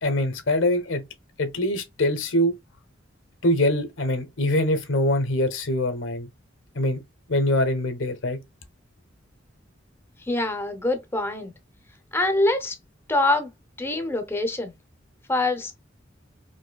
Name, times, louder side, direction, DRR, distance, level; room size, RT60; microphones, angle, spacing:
voice 1, 0.0-1.0 1.4-2.5 3.4-6.3 6.7-7.0 7.3-8.4, left 1 dB, 85° left, 1.0 m, -23 dB
voice 2, 10.3-11.5 12.1-12.8 13.1-13.5 13.8-14.7 15.3-15.8, left 2 dB, 10° left, 0.5 m, -24 dB
4.5 x 2.6 x 2.2 m
head